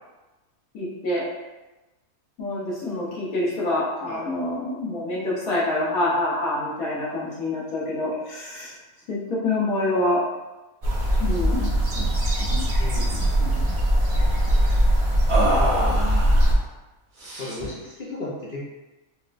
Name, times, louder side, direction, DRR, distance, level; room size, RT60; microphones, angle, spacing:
voice 1, 0.7-1.3 2.4-8.7 9.1-10.2 11.2-11.7, left 2 dB, 75° left, -7 dB, 1.5 m, -26 dB
sound 1, 10.8-16.5, equal, 80° right, 0.3 m, -21 dB
sound 2, 12.0-12.1 12.4-12.6 12.9-13.7 15.3-16.5 17.2-17.8, right 1 dB, 45° right, 1.3 m, -27 dB
voice 2, 12.8-13.4 15.6-16.0 17.4-18.7, left 2 dB, 55° left, -7 dB, 0.6 m, -34 dB
4.3 x 2.1 x 2.5 m, 1.1 s
omnidirectional pair, 1.5 m